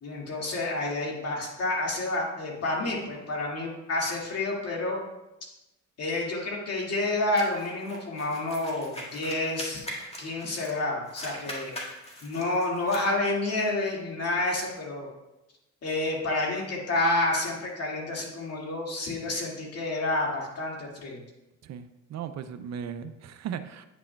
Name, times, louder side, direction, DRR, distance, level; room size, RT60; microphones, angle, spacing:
voice 1, 0.0-5.0 6.0-9.9 10.2-11.7 12.2-15.1 15.8-21.2, left 2 dB, 55° left, -2 dB, 2.1 m, -29 dB
sound 1, 7.4-10.8 11.1-13.1, equal, 20° left, 1.8 m, -41 dB
voice 2, 21.6-23.8, right 8 dB, 60° right, 11 dB, 0.5 m, -37 dB
9.5 x 6.1 x 2.2 m, 0.96 s
cardioid pair, 90°, 30 cm